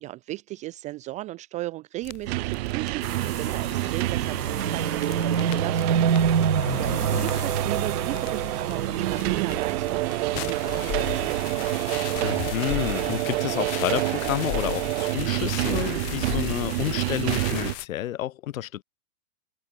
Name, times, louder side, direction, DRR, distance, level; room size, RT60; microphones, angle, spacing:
voice 1, 0.0-3.0 3.4-6.0 6.8-11.4, right 18 dB, 15° right, 0.4 m, -36 dB
sound 1, 2.0-17.9, left 29 dB, 35° left, 1.4 m, -38 dB
sound 2, 2.3-17.8, right 21 dB, 45° right, 1.0 m, -28 dB
sound 3, 3.0-12.2, right 7 dB, 90° right, 2.3 m, -28 dB
voice 2, 12.2-18.8, left 13 dB, 60° left, 3.3 m, -30 dB
hypercardioid pair, 120°, 45 cm